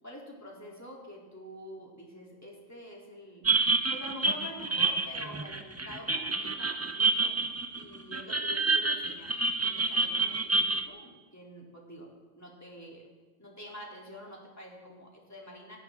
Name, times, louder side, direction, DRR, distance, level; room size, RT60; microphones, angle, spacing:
voice 1, 0.0-3.5 3.9-7.3 7.7-9.4 9.6-13.1 13.4-15.8, equal, 15° left, -3 dB, 3.0 m, -47 dB
sound 1, 3.4-10.8, right 3 dB, 20° right, 0.5 m, -28 dB
17.0 x 15.5 x 3.6 m, 1.3 s
omnidirectional pair, 1.1 m